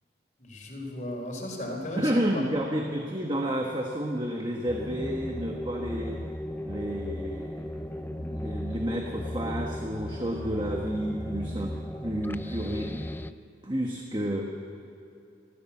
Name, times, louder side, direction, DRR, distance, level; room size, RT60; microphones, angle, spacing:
voice 1, 0.4-2.6, left 1 dB, 45° left, 0 dB, 4.5 m, -36 dB
voice 2, 2.0-6.2 6.6-13.1 13.6-14.5, equal, 25° right, 1 dB, 1.3 m, -31 dB
sound 1, 4.7-13.3, left 1 dB, 10° left, 0.4 m, -36 dB
24.5 x 14.5 x 7.3 m, 2.7 s
head